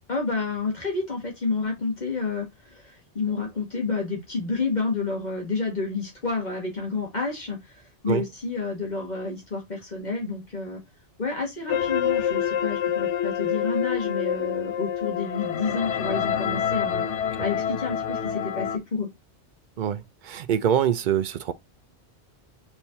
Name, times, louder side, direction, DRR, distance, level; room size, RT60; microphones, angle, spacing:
voice 1, 0.1-10.8 11.2-17.1 17.4-19.1, left 4 dB, 40° left, 1.7 m, -30 dB
sound 1, 11.7-18.8, left 9 dB, 90° left, 0.9 m, -27 dB
voice 2, 19.8-21.5, right 9 dB, 60° right, 0.5 m, -24 dB
4.4 x 3.6 x 2.6 m
omnidirectional pair, 1.1 m